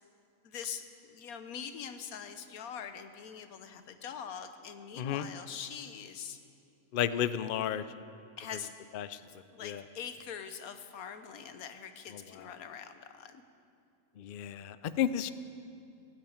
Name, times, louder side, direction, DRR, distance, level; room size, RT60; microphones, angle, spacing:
voice 1, 0.4-6.4 8.4-8.7 9.3-13.4, left 7 dB, 85° left, 9 dB, 1.3 m, -43 dB
voice 2, 6.9-7.8 8.9-9.2 9.6-9.8 14.2-15.3, left 10 dB, 70° left, 14 dB, 0.5 m, -32 dB
15.5 x 9.0 x 8.7 m, 2.5 s
omnidirectional pair, 1.5 m